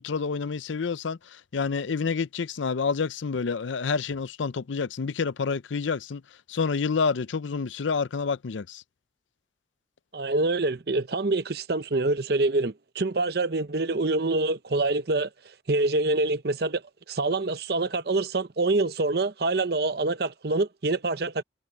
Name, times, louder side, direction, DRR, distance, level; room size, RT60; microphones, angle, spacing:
voice 1, 0.0-6.2 6.5-8.8, left 5 dB, 80° left, 0.5 m, -28 dB
voice 2, 10.1-15.3 15.7-16.8 17.1-21.4, right 2 dB, 55° right, 0.8 m, -26 dB
head